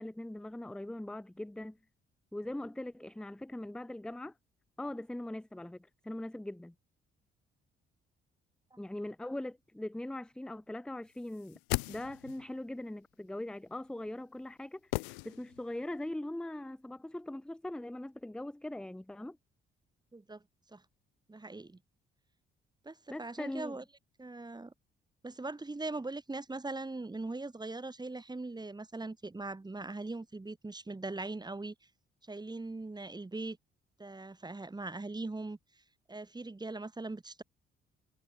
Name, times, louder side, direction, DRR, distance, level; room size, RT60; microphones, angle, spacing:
voice 1, 0.0-1.8 2.3-4.3 4.8-6.7 8.8-11.6 11.9-19.4 23.1-23.8, left 1 dB, 5° left, 0.6 m, -41 dB
sound 1, 11.3-12.5 14.9-15.8 16.1-16.2, left 34 dB, 65° left, 1.0 m, -37 dB
voice 2, 20.1-20.4 20.7-20.8 21.3-21.8 22.8-23.8 24.2-24.7 25.2-31.7 32.3-33.6 34.0-35.6 36.1-37.4, right 2 dB, 15° right, 1.7 m, -40 dB
figure-of-eight pair, 45°, 29 cm